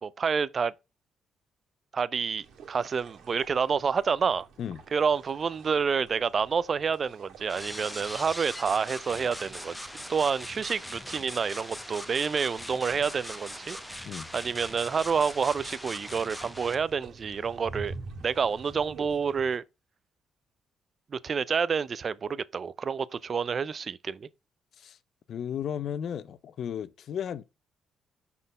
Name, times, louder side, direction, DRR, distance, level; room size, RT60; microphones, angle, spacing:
voice 1, 0.0-0.7 1.9-4.5 4.9-9.8 10.1-13.8 14.3-17.9 18.2-19.6 21.1-24.3, right 6 dB, 45° right, 0.4 m, -28 dB
sound 1, 2.4-19.6, right 4 dB, 75° right, 1.7 m, -49 dB
sound 2, 7.5-16.7, left 1 dB, 5° left, 0.8 m, -41 dB
voice 2, 25.3-27.4, left 9 dB, 65° left, 0.5 m, -34 dB
5.6 x 4.1 x 5.2 m
cardioid pair, 90°, 0 cm